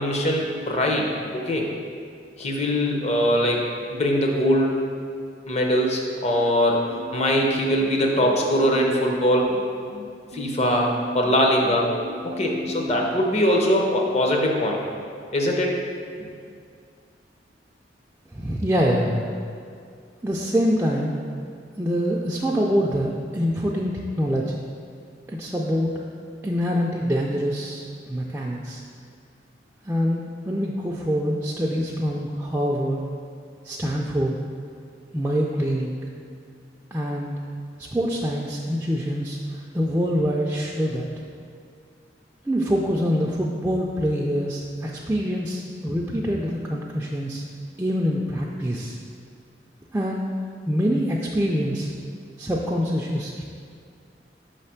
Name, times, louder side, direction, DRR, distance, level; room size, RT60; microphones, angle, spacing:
voice 1, 0.0-1.7 2.4-4.8 5.5-9.5 10.3-11.9 12.2-14.8 15.3-15.8, equal, 40° left, 0 dB, 0.7 m, -22 dB
sound 1, 6.9-9.9 10.3-13.3, equal, 60° right, 0.6 m, -35 dB
voice 2, 18.3-19.3 20.2-21.1 21.8-24.6 25.3-25.9 26.4-28.8 29.8-33.0 33.6-34.4 35.1-35.9 36.9-37.4 37.8-41.1 42.4-47.4 47.8-49.0 49.9-50.3 50.7-51.9 52.4-53.4, equal, 10° right, -3 dB, 0.3 m, -25 dB
5.6 x 3.2 x 5.7 m, 2.2 s
head